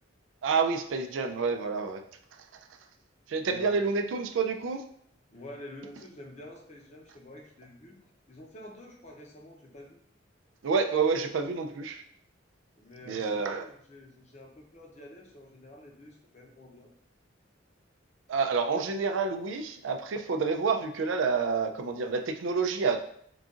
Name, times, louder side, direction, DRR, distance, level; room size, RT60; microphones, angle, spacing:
voice 1, 0.4-2.0 3.3-4.8 10.6-12.0 13.1-13.6 18.3-23.0, right 5 dB, 85° right, 5 dB, 0.4 m, -28 dB
voice 2, 3.4-3.7 5.3-8.0 8.3-10.0 12.8-16.9, left 1 dB, 35° left, 0 dB, 0.7 m, -48 dB
3.9 x 2.4 x 3.6 m, 0.67 s
head